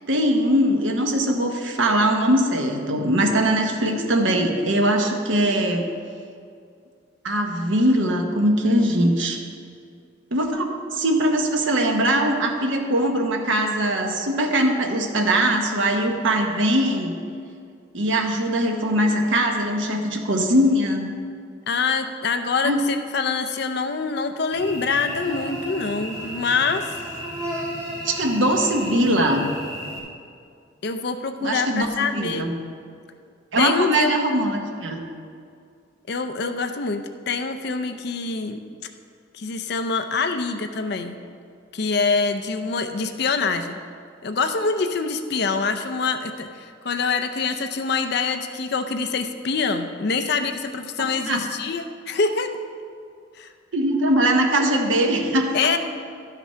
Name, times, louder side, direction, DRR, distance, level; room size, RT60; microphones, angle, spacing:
voice 1, 0.1-5.9 7.2-9.4 10.3-17.1 17.9-21.1 22.6-22.8 28.0-29.5 31.4-31.9 32.1-32.5 33.5-35.0 51.3-51.4 53.7-55.7, right 1 dB, 80° right, 3 dB, 1.0 m, -21 dB
voice 2, 21.7-26.9 30.8-32.4 33.6-34.2 36.1-38.6 39.3-41.2 41.7-43.7 44.2-52.5 53.4-53.5 55.5-55.8, left 4 dB, 55° left, 8 dB, 0.5 m, -25 dB
Cricket / Buzz, 24.5-30.0, equal, 15° right, 1.7 m, -34 dB
12.0 x 5.9 x 5.5 m, 2.3 s
head